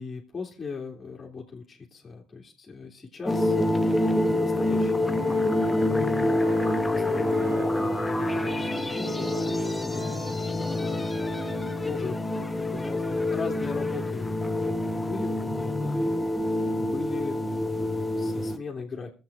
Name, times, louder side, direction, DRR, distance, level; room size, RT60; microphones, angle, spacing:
voice 1, 0.0-6.4 6.7-10.1 10.5-11.3 11.8-16.2 16.5-19.1, left 4 dB, 30° left, -4 dB, 2.4 m, -39 dB
sound 1, 3.3-18.6, left 1 dB, 15° left, 0.9 m, -27 dB
Wind instrument woodwind instrument, 5.0-12.1, right 3 dB, 80° right, 2.1 m, -42 dB
22.5 x 7.7 x 3.5 m, 0.34 s
supercardioid pair, 90°, 0 cm